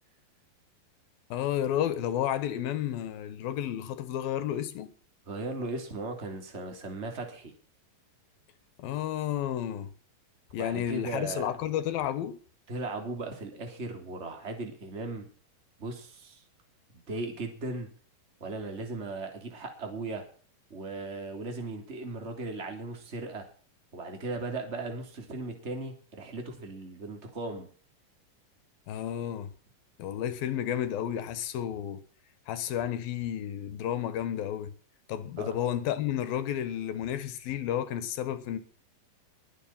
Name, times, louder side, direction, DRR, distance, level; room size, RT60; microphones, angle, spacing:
voice 1, 1.3-4.9 8.8-9.9 10.5-12.4 28.9-29.5 30.0-32.0 32.5-34.7 35.1-38.6, left 10 dB, 80° left, 3.2 m, -31 dB
voice 2, 5.3-7.5 10.6-11.5 12.7-15.3 15.8-16.4 17.1-17.9 18.4-20.3 20.7-23.5 23.9-27.7 35.4-35.6, right 2 dB, 20° right, 3.2 m, -37 dB
20.5 x 8.1 x 5.8 m
omnidirectional pair, 4.1 m